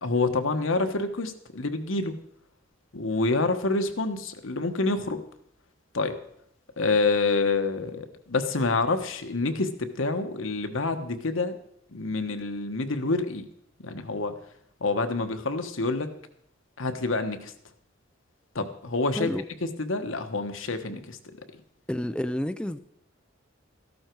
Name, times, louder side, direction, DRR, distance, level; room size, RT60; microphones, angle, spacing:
voice 1, 0.0-2.1 2.9-5.2 5.9-6.2 6.8-11.5 11.9-13.4 13.8-14.3 14.8-16.1 16.8-17.5 18.5-19.3 19.8-21.2, left 3 dB, 80° left, 7 dB, 1.3 m, -27 dB
voice 2, 21.9-22.8, left 1 dB, 5° left, 10 dB, 0.4 m, -29 dB
14.0 x 12.0 x 4.6 m, 0.73 s
head